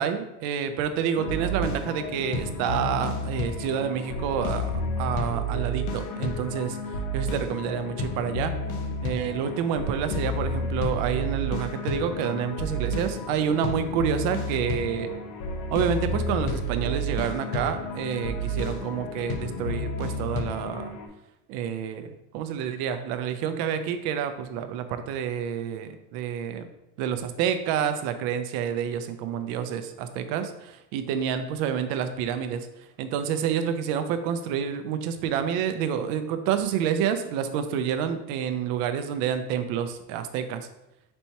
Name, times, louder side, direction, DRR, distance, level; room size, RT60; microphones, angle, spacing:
voice 1, 0.0-8.5 9.0-15.1 15.7-21.0 21.5-26.6 27.0-40.7, right 8 dB, 85° right, 9 dB, 0.5 m, -28 dB
sound 1, 1.2-21.1, left 1 dB, 55° left, 0.7 m, -31 dB
4.3 x 2.8 x 4.4 m, 0.89 s
cardioid pair, 165°, 36 cm